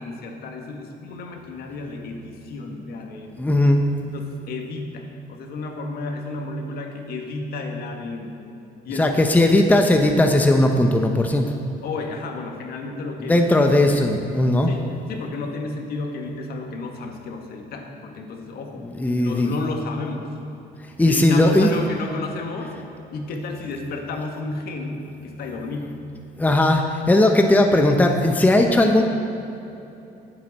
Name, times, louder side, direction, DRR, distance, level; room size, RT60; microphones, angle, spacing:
voice 1, 0.0-3.5 4.1-8.3 8.9-9.5 11.8-13.8 14.6-18.8 19.2-20.3 21.0-22.7 23.1-26.0, left 3 dB, 65° left, 2 dB, 1.7 m, -32 dB
voice 2, 3.4-3.8 9.0-11.5 13.3-14.7 19.0-19.5 21.0-21.7 26.4-29.0, left 1 dB, 10° left, 3 dB, 0.8 m, -17 dB
19.0 x 7.7 x 4.2 m, 2.9 s
cardioid pair, 110°, 17 cm